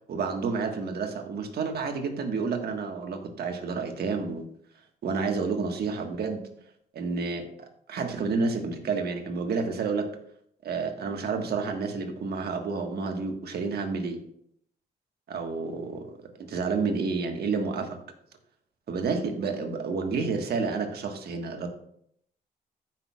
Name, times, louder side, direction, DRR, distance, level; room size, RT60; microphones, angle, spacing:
voice 1, 0.1-4.4 5.0-6.4 6.9-7.5 7.9-10.1 10.6-14.2 15.3-16.1 16.4-18.0 18.9-21.7, right 4 dB, 75° right, 4 dB, 1.5 m, -30 dB
14.5 x 6.0 x 2.4 m, 0.70 s
cardioid pair, 65°, 17 cm